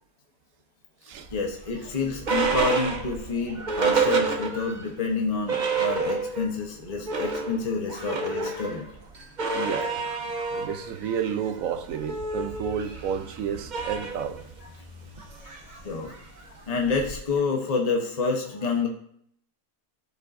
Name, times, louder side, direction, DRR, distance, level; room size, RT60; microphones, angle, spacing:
sound 1, 1.2-4.9 5.2-5.3 5.5-6.6 6.9-17.3, right 4 dB, 40° right, 0.8 m, -29 dB
voice 1, 1.3-8.9 14.6-14.7 15.2-16.2 16.5-18.9, left 4 dB, 30° left, 0.9 m, -28 dB
voice 2, 9.5-10.0 10.5-14.4, right 8 dB, 70° right, 0.9 m, -31 dB
12.5 x 5.2 x 2.6 m
omnidirectional pair, 1.6 m